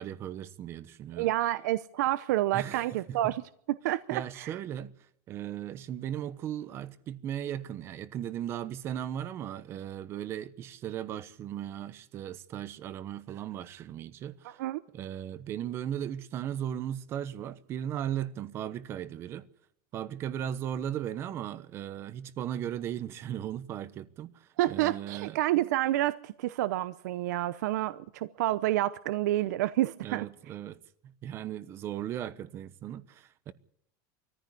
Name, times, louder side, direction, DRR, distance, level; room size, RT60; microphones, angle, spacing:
voice 1, 0.0-1.3 2.5-3.3 4.1-4.9 5.3-14.6 14.9-19.5 19.9-25.4 30.0-33.5, right 10 dB, 25° right, 1.0 m, -37 dB
voice 2, 1.2-3.4 3.7-4.6 14.4-14.8 24.6-30.3, right 15 dB, 70° right, 0.8 m, -29 dB
21.0 x 14.5 x 9.8 m
supercardioid pair, 175°, 10 cm